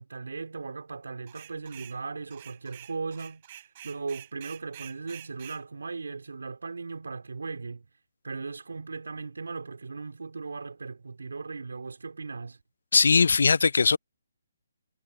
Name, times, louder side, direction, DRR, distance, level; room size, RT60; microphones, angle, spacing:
voice 1, 0.0-7.9 8.2-12.6, right 4 dB, 80° right, 2.9 m, -38 dB
sound 1, 1.3-2.0 2.3-5.6, right 13 dB, 40° right, 3.1 m, -47 dB
voice 2, 12.9-14.0, left 5 dB, 75° left, 0.5 m, -20 dB
hypercardioid pair, 150°, 0 cm